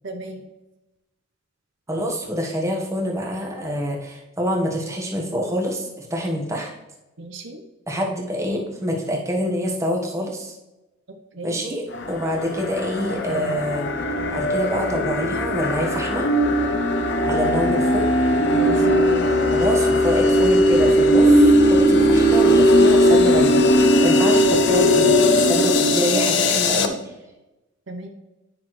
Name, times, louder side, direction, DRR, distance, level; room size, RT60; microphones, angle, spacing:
voice 1, 0.0-0.4 7.2-7.6 11.3-11.6 18.5-19.1 27.9-28.1, right 2 dB, 60° right, 4 dB, 0.7 m, -35 dB
voice 2, 1.9-6.7 7.9-10.6 11.4-13.9 14.3-16.3 17.2-18.0 19.5-27.0, equal, 15° right, -1 dB, 1.1 m, -26 dB
sound 1, 11.9-26.9, equal, 55° left, 0.6 m, -18 dB
9.7 x 6.0 x 3.1 m, 1.0 s
head